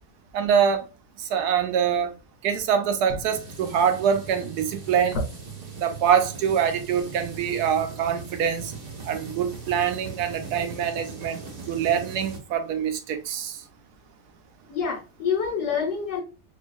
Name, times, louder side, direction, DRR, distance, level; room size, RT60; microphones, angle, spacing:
voice 1, 0.3-0.8 1.3-2.1 2.4-5.2 5.8-8.7 9.1-11.4 11.7-13.6, right 8 dB, 80° right, 1.1 m, -24 dB
sound 1, 3.2-12.4, right 4 dB, 40° right, 0.6 m, -39 dB
voice 2, 14.7-16.2, left 6 dB, 75° left, 1.5 m, -27 dB
4.4 x 2.6 x 2.3 m
omnidirectional pair, 1.7 m